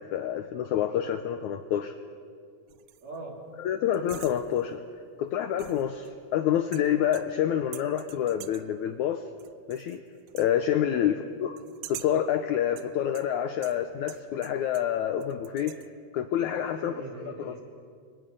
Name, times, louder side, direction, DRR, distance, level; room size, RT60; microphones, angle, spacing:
voice 1, 0.0-2.0 3.6-9.3 9.7-10.0 10.3-11.6 11.9-15.8 16.1-17.0 17.4-17.5, left 10 dB, 80° left, 8 dB, 1.8 m, -28 dB
sound 1, 2.7-3.2 3.9-4.8 5.6-6.3 6.7-7.5 7.7-8.8 9.4-10.0 10.3-10.5 11.6-12.3 12.8-15.0 15.2-15.9, right 14 dB, 75° right, 2.1 m, -47 dB
voice 2, 3.0-3.5 11.0-11.2 16.8-17.6, right 2 dB, 50° right, 0 dB, 4.2 m, -41 dB
29.5 x 23.5 x 5.3 m, 2.2 s
omnidirectional pair, 4.2 m